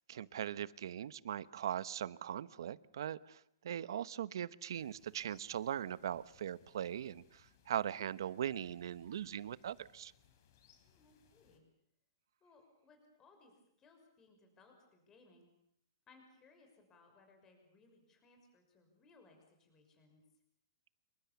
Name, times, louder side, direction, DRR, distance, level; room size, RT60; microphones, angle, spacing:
voice 1, 0.1-10.1, right 10 dB, 70° right, 17 dB, 1.0 m, -40 dB
sound 1, 4.7-11.6, left 8 dB, 50° left, 4.6 m, -69 dB
voice 2, 10.8-11.6 12.4-13.5 13.8-15.5 16.1-20.2, left 3 dB, 20° left, 4 dB, 6.0 m, -65 dB
27.5 x 24.0 x 7.1 m, 0.74 s
hypercardioid pair, 155°, 2 cm